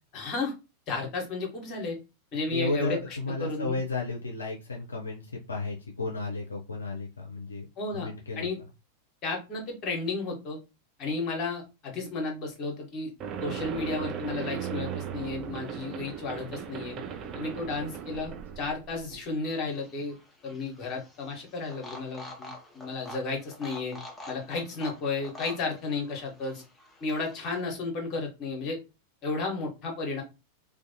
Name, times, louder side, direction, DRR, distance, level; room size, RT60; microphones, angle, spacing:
voice 1, 0.1-0.5 0.9-2.0 2.3-3.0 3.4-3.8 7.8-8.1 8.4-8.6 9.2-10.6 11.0-13.1 13.4-17.0 17.3-20.2 20.4-24.0 24.3-26.6 27.0-28.8 29.2-30.2, left 3 dB, 35° left, 1 dB, 1.0 m, -33 dB
voice 2, 2.5-7.7 7.9-8.5, left 3 dB, 75° left, 1 dB, 0.4 m, -33 dB
sound 1, 13.2-19.3, right 8 dB, 30° right, 0.4 m, -37 dB
sound 2, 13.7-14.6 14.9-16.0 16.3-17.3 17.6-19.4 19.6-20.5, right 1 dB, 60° right, 1.0 m, -54 dB
sound 3, 19.4-27.6, left 1 dB, 10° left, 0.6 m, -47 dB
2.4 x 2.2 x 2.6 m, 0.28 s
figure-of-eight pair, 90°, 0 cm